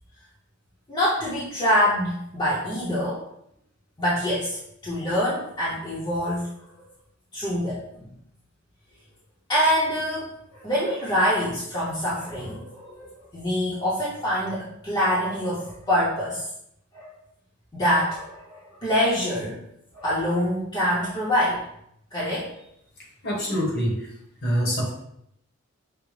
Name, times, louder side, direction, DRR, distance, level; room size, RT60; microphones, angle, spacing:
voice 1, 0.9-3.2 4.0-6.5 7.3-8.1 9.5-16.5 16.9-17.1 17.7-19.6 19.9-21.6 22.1-22.5, equal, 20° left, -9 dB, 0.7 m, -25 dB
voice 2, 23.0-24.1 24.4-24.9, equal, 50° left, -4 dB, 1.1 m, -26 dB
5.1 x 2.1 x 3.2 m, 0.74 s
head